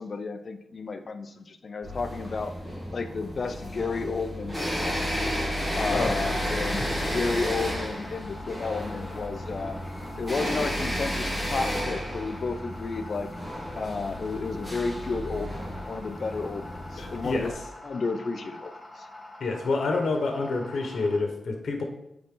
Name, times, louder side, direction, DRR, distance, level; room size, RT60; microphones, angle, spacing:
voice 1, 0.0-2.6 2.9-5.4 5.7-9.8 10.2-13.3 13.8-17.5 17.8-19.1, left 4 dB, 55° left, 8 dB, 0.6 m, -32 dB
sound 1, 1.8-17.5, equal, 5° right, 2.5 m, -32 dB
sound 2, 5.9-21.2, left 1 dB, 20° left, 2.0 m, -45 dB
voice 2, 17.0-17.5 19.4-21.8, left 3 dB, 75° left, 3 dB, 1.2 m, -28 dB
8.6 x 3.9 x 3.8 m, 0.81 s
wide cardioid pair, 110°, 0 cm